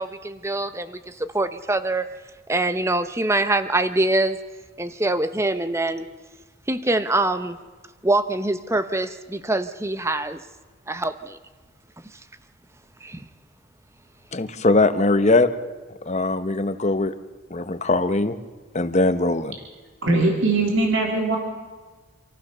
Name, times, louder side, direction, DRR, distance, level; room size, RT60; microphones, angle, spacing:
voice 1, 0.0-2.1 2.5-4.4 4.8-6.1 6.7-7.6 8.0-10.4 10.9-11.4 13.0-13.3, right 2 dB, 15° right, 11 dB, 0.8 m, -24 dB
voice 2, 14.3-15.5 16.1-17.1 17.5-18.4 18.7-19.6, left 2 dB, 30° left, 11 dB, 0.9 m, -20 dB
voice 3, 20.0-21.4, right 2 dB, 60° right, 1 dB, 3.2 m, -20 dB
26.5 x 15.0 x 6.8 m, 1.4 s
head